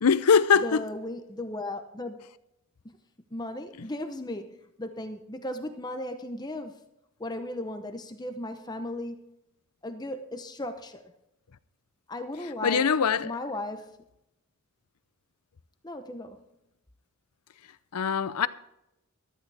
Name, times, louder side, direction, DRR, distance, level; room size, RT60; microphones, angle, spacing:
voice 1, 0.0-0.8 12.6-13.3 17.9-18.5, left 6 dB, 90° left, 0.6 m, -22 dB
voice 2, 0.6-2.3 2.8-2.9 3.3-6.8 7.2-9.2 9.8-11.1 12.1-12.8 13.2-13.9 15.8-16.4, left 1 dB, 20° left, 0.7 m, -36 dB
14.5 x 13.0 x 3.4 m
head